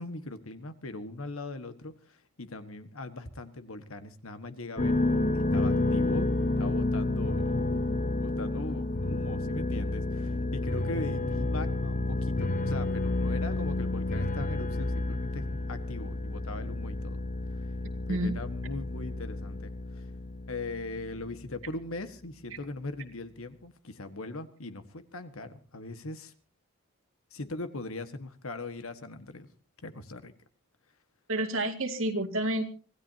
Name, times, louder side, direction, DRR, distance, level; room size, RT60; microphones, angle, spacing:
voice 1, 0.0-6.3 6.6-7.8 8.2-17.2 17.6-17.7 18.1-20.1 20.5-26.3 27.3-29.5 29.8-30.3, left 2 dB, 80° left, 9 dB, 1.6 m, -40 dB
sound 1, 4.8-21.3, left 2 dB, 35° left, 0.9 m, -30 dB
voice 2, 31.3-32.7, right 1 dB, 70° right, 4 dB, 2.2 m, -29 dB
25.5 x 16.5 x 2.8 m, 0.39 s
head